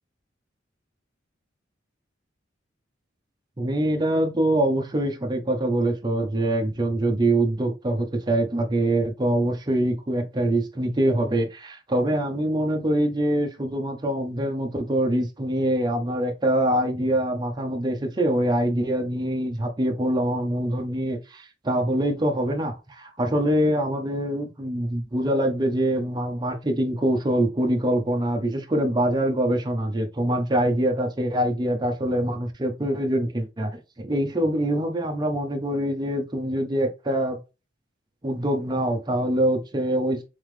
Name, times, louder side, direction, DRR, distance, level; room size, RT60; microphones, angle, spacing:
voice 1, 3.6-37.4 38.2-40.3, right 1 dB, 25° right, 0.7 m, -24 dB
3.7 x 3.5 x 3.2 m
head